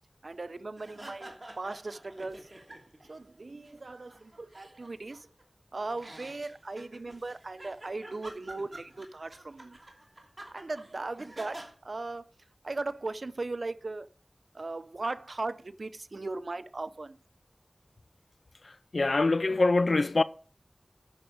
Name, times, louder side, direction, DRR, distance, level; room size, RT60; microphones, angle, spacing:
voice 1, 0.2-2.5 3.1-5.3 5.7-9.8 10.5-12.3 12.6-14.1 14.5-17.2, right 3 dB, 75° right, 0.6 m, -38 dB
sound 1, 0.8-3.1 3.4-5.4 5.9-11.7, right 1 dB, 40° right, 2.8 m, -48 dB
voice 2, 18.6-20.2, left 3 dB, 75° left, 0.5 m, -25 dB
9.6 x 6.3 x 6.3 m
wide cardioid pair, 50°, 0 cm